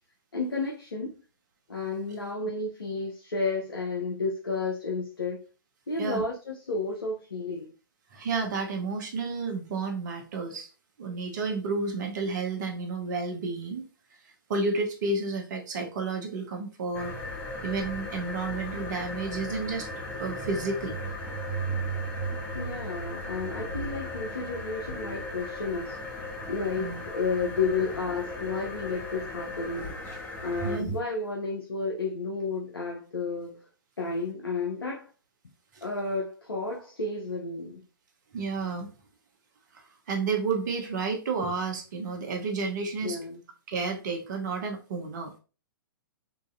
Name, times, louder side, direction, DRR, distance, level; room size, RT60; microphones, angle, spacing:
voice 1, 0.3-1.1 1.7-5.4 5.9-7.7 22.5-26.0 26.5-29.9 30.4-33.6 34.0-35.1 35.8-37.8 43.0-43.4, left 3 dB, 85° left, -1 dB, 0.8 m, -32 dB
voice 2, 8.1-10.7 11.0-13.9 14.5-17.1 17.6-19.9 20.2-21.0 26.8-27.0 30.6-30.9 38.3-38.9 40.1-43.2 43.7-45.4, right 4 dB, 55° right, 3 dB, 1.0 m, -31 dB
sound 1, 16.9-31.0, equal, 15° left, 0.8 m, -36 dB
3.9 x 2.6 x 2.5 m, 0.34 s
figure-of-eight pair, 120°, 12 cm